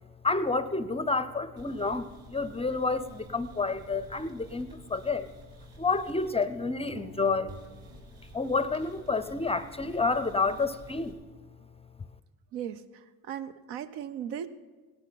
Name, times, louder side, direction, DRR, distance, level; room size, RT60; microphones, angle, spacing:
voice 1, 0.2-5.3 5.8-7.5 8.3-11.2, left 3 dB, 15° left, 14 dB, 0.5 m, -29 dB
sound 1, 1.6-6.6 6.9-11.1, right 2 dB, 50° right, 3.5 m, -52 dB
voice 2, 12.5-14.5, right 9 dB, 75° right, 12 dB, 0.7 m, -37 dB
16.5 x 11.5 x 3.9 m, 1.3 s
hypercardioid pair, 60°, 42 cm